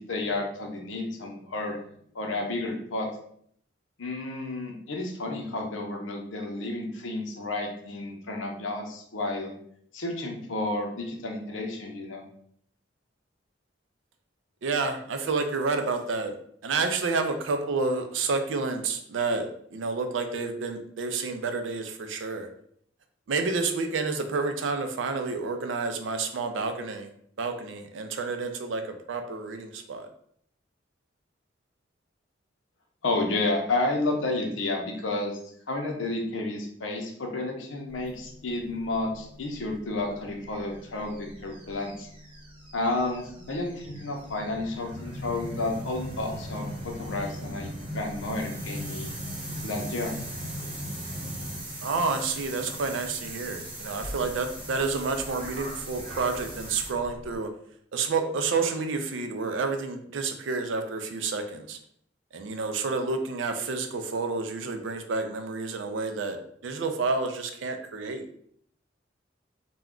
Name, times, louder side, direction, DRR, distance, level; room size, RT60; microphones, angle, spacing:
voice 1, 0.0-1.8 2.1-3.1 4.0-9.5 9.9-12.2 33.0-35.4 35.7-42.1 42.7-49.1 49.6-50.2, left 2 dB, 85° left, 2 dB, 0.6 m, -31 dB
voice 2, 14.6-16.3 16.6-22.5 23.3-27.1 27.4-30.1 51.8-57.5 57.9-61.8 62.3-66.4 66.6-68.3, right 4 dB, 75° right, 6 dB, 0.4 m, -29 dB
sound 1, 37.9-57.4, equal, 30° right, 0.7 m, -39 dB
2.3 x 2.1 x 3.6 m, 0.66 s
head